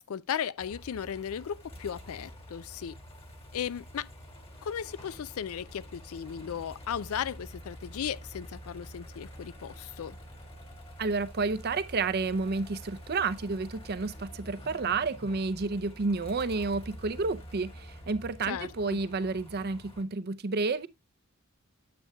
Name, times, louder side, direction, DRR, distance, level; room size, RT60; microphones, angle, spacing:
voice 1, 0.0-3.0 3.5-4.1 4.6-10.2 18.5-19.0, left 8 dB, 70° left, 0.4 m, -36 dB
sound 1, 0.6-20.0, equal, 25° left, 1.7 m, -47 dB
voice 2, 11.0-20.9, right 4 dB, 45° right, 0.5 m, -30 dB
9.1 x 7.9 x 2.3 m
head